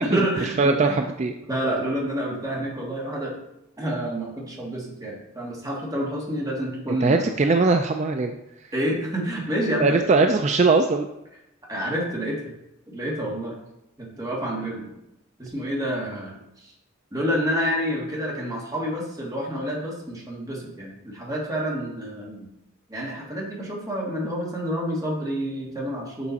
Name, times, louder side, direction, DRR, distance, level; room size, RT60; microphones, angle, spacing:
voice 1, 0.0-1.0 1.5-3.3 3.8-7.3 8.7-10.0 11.7-12.5 12.9-13.5 14.0-14.9 15.4-16.7 17.1-22.5 22.9-26.3, equal, 15° right, -3 dB, 1.8 m, -28 dB
voice 2, 0.6-1.3 7.0-8.3 9.8-11.1, right 3 dB, 30° right, 5 dB, 0.3 m, -20 dB
7.1 x 6.1 x 4.1 m, 0.86 s
head